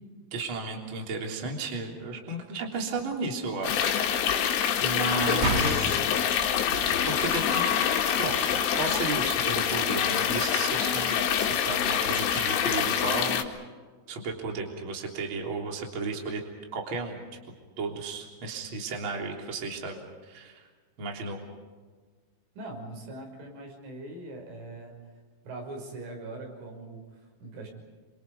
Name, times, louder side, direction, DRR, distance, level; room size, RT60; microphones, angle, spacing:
voice 1, 0.3-6.4 7.1-7.7 8.2-13.4 14.1-16.4 16.7-17.2 17.8-20.7 21.0-21.4, right 3 dB, 30° right, 1 dB, 3.6 m, -34 dB
sound 1, 3.6-13.4, left 9 dB, 85° left, 4.4 m, -26 dB
sound 2, 5.1-6.0 6.5-9.3, right 3 dB, 55° right, 5.5 m, -34 dB
voice 2, 22.6-25.0 25.4-27.7, right 2 dB, 80° right, 2 dB, 8.2 m, -41 dB
28.0 x 27.0 x 5.4 m, 1.4 s
omnidirectional pair, 5.6 m